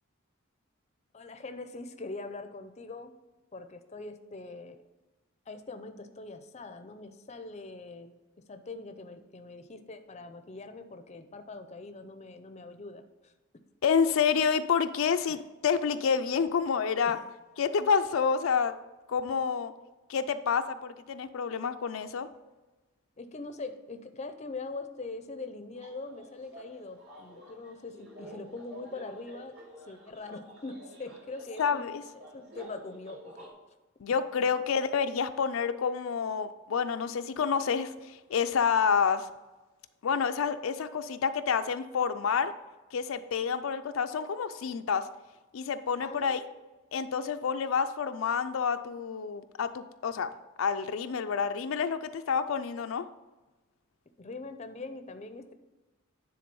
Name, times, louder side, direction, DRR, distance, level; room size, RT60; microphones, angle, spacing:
voice 1, 1.1-3.1 3.5-4.8 5.5-8.1 8.5-13.3 15.3-15.4 17.0-17.2 23.2-29.6 29.8-31.9 32.1-33.5 46.0-46.5 54.2-55.5, left 3 dB, 35° left, 8 dB, 0.5 m, -42 dB
voice 2, 13.8-17.2 17.6-18.7 19.1-19.7 20.1-22.3 31.6-32.0 34.0-39.3 40.0-42.5 42.9-45.1 45.5-46.4 46.9-50.3 50.6-53.1, left 6 dB, 85° left, 9 dB, 0.4 m, -28 dB
sound 1, 25.7-33.5, equal, 55° right, 2.9 m, -50 dB
9.5 x 3.8 x 5.3 m, 1.1 s
head